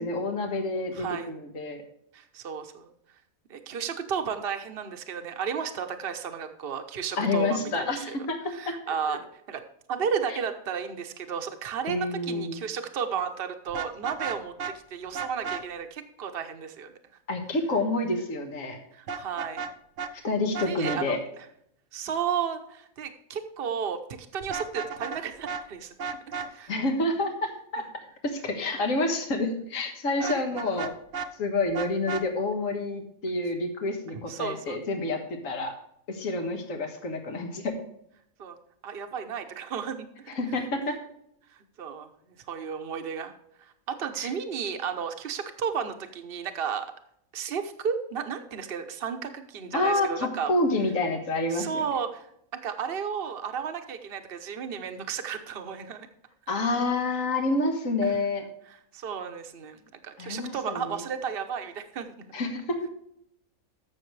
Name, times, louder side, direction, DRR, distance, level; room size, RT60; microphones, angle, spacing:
voice 1, 0.0-1.8 7.2-8.4 8.7-8.8 9.1-9.2 11.9-12.6 17.3-18.8 20.2-21.2 26.7-27.8 28.2-30.9 31.4-35.7 36.1-37.8 40.4-41.0 44.2-44.3 49.7-51.8 56.5-58.4 60.2-61.0 62.3-62.8, left 2 dB, 65° left, 5 dB, 1.9 m, -28 dB
voice 2, 0.9-1.3 2.1-2.9 3.5-8.2 8.5-9.6 9.9-16.9 18.9-19.6 20.1-20.3 20.6-21.2 21.9-25.9 26.3-26.7 28.7-28.8 30.2-30.9 34.1-34.8 38.4-38.6 38.8-40.3 40.8-40.9 41.5-46.9 47.3-50.5 51.5-52.3 52.6-56.1 58.1-58.2 58.6-62.1, right 7 dB, 45° right, 7 dB, 1.1 m, -33 dB
Vehicle horn car horn honking, 13.7-14.8 15.1-15.6 19.1-19.7 20.0-20.1 20.5-21.0 24.4-25.2 25.5-25.6 26.0-26.5 30.2-31.3 31.7-32.3, right 5 dB, 70° right, 1.2 m, -33 dB
14.0 x 6.4 x 3.3 m, 0.73 s
omnidirectional pair, 1.5 m